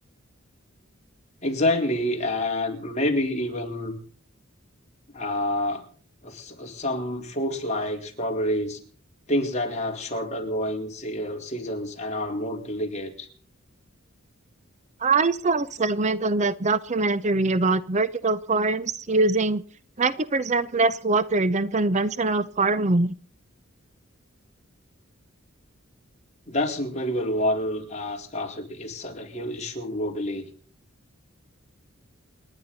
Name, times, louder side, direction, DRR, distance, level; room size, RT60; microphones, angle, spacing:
voice 1, 1.4-3.9 5.1-5.8 6.2-8.8 9.3-13.3 26.5-30.5, left 1 dB, 35° left, 1 dB, 3.9 m, -28 dB
voice 2, 15.0-19.6 20.0-23.1, right 3 dB, 35° right, 14 dB, 0.6 m, -23 dB
28.5 x 10.5 x 4.1 m, 0.43 s
head